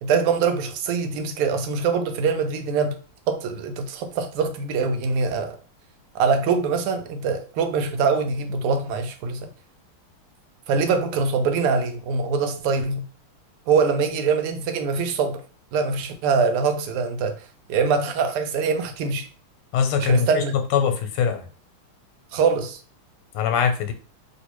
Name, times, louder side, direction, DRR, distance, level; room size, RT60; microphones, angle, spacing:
voice 1, 0.0-3.0 3.3-5.6 6.1-9.5 10.7-13.0 13.7-15.4 15.7-19.3 20.0-20.5 22.3-22.8, right 5 dB, 90° right, 1.5 m, -23 dB
voice 2, 19.7-20.4 20.7-21.5 23.3-23.9, left 7 dB, 85° left, 1.5 m, -22 dB
3.0 x 3.0 x 2.9 m
omnidirectional pair, 2.4 m